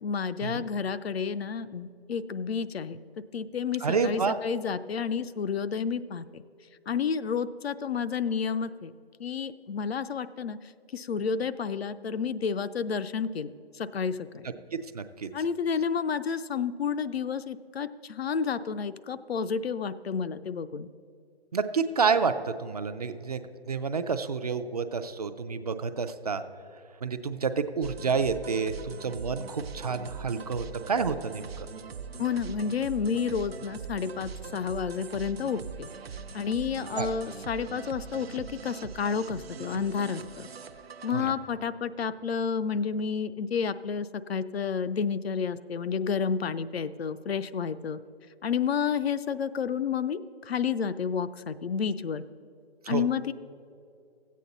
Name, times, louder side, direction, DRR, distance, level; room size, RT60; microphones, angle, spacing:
voice 1, 0.0-3.0 3.3-6.2 6.9-8.9 9.2-10.6 10.9-13.5 13.8-14.5 15.3-20.9 32.2-35.9 36.3-40.5 41.0-48.0 48.4-50.2 50.5-52.2 52.9-53.3, left 6 dB, 75° left, 12 dB, 0.5 m, -30 dB
voice 2, 3.8-4.4 14.7-15.3 21.5-26.4 27.0-31.5 37.0-37.1 41.1-41.3 52.8-53.0, right 5 dB, 40° right, 10 dB, 0.4 m, -29 dB
sound 1, 27.8-41.7, right 6 dB, 70° right, 0.7 m, -42 dB
14.0 x 8.4 x 4.0 m, 2.4 s
figure-of-eight pair, 150°, 31 cm